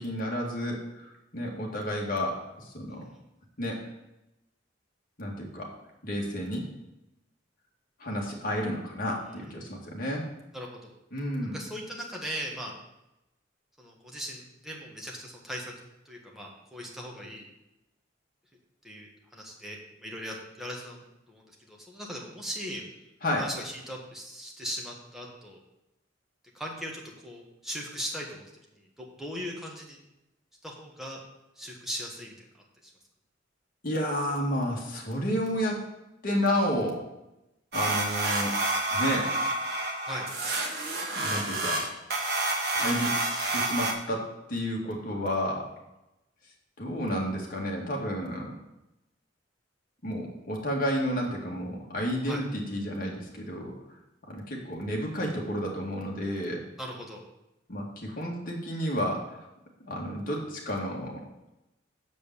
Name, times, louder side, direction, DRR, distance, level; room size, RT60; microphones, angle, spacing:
voice 1, 0.0-3.0 3.6-3.8 5.2-5.7 6.0-6.7 8.0-10.3 11.1-11.6 23.2-23.5 33.8-35.8 36.2-37.0 37.7-38.6 38.9-39.3 41.1-41.8 42.7-45.7 46.8-48.5 50.0-53.7 54.3-56.6 57.7-59.5 59.8-61.2, equal, 50° left, -1 dB, 2.0 m, -31 dB
voice 2, 10.5-10.9 11.4-12.7 13.8-15.7 16.0-17.5 18.8-22.8 23.4-25.6 26.5-28.4 28.7-30.0 30.6-31.2 31.5-32.3 32.8-32.9 40.0-40.3 52.2-52.4 56.8-57.2, equal, ahead, -2 dB, 1.5 m, -39 dB
sound 1, 37.7-43.9, right 2 dB, 60° right, 1.4 m, -29 dB
7.3 x 5.3 x 6.8 m, 0.92 s
head